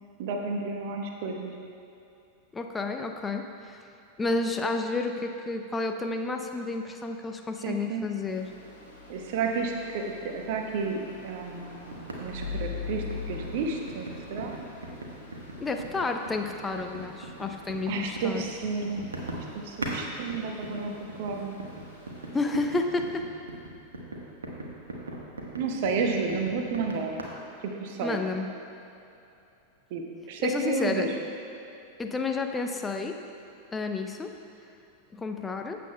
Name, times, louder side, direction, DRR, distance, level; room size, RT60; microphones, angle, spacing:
voice 1, 0.2-1.5 7.6-8.0 9.1-14.5 17.9-19.1 19.5-20.9 21.2-21.6 25.6-27.2 27.6-28.2 29.9-31.1, right 4 dB, 50° right, 2 dB, 1.0 m, -31 dB
voice 2, 2.5-3.8 4.2-8.5 15.6-18.4 22.3-23.3 28.0-28.5 30.4-31.1 32.0-33.2 33.7-34.3 35.1-35.8, left 3 dB, 15° left, 4 dB, 0.6 m, -30 dB
Stream, 8.2-23.1, left 5 dB, 85° left, 2.1 m, -44 dB
sound 1, 11.9-20.0 20.3-27.2, right 2 dB, 70° right, 1.3 m, -39 dB
15.5 x 7.7 x 2.3 m, 2.8 s
figure-of-eight pair, 90°, 0 cm